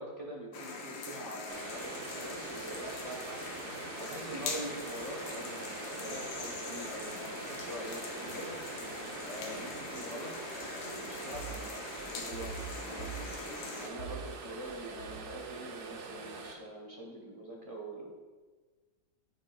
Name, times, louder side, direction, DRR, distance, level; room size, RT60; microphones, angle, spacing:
voice 1, 0.0-3.4 4.0-8.6 9.2-10.3 10.9-12.6 12.9-13.3 13.7-18.1, right 1 dB, 35° right, -2 dB, 0.5 m, -44 dB
sound 1, 0.5-13.9, left 4 dB, 85° left, 1.5 m, -43 dB
sound 2, 1.5-16.6, right 4 dB, 70° right, 0.7 m, -44 dB
sound 3, 1.9-11.7 12.0-13.7 14.0-14.4 14.6-15.4, right 4 dB, 40° left, 1.6 m, -50 dB
8.7 x 5.7 x 2.2 m, 1.3 s
omnidirectional pair, 2.0 m